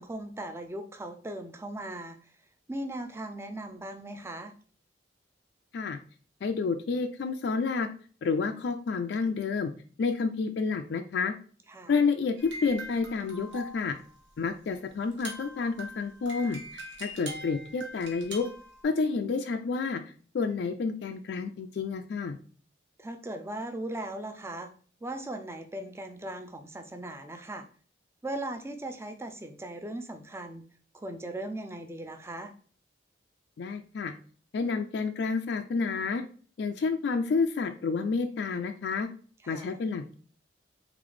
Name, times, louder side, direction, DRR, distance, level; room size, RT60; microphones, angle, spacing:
voice 1, 0.0-2.3 2.7-4.5 11.7-11.9 23.0-24.7 25.0-27.6 28.2-30.6 30.9-32.5 39.4-39.7, right 1 dB, 15° right, 7 dB, 0.4 m, -38 dB
voice 2, 6.4-7.9 8.2-9.7 10.0-11.3 11.9-14.0 14.4-18.5 18.8-20.0 20.3-22.4 33.6-34.1 34.5-36.2 36.6-39.1 39.5-40.1, left 4 dB, 60° left, 6 dB, 0.3 m, -29 dB
sound 1, 12.4-14.1 14.7-14.8 15.0-18.8, right 1 dB, 70° right, 1.1 m, -43 dB
3.9 x 3.3 x 3.2 m, 0.43 s
head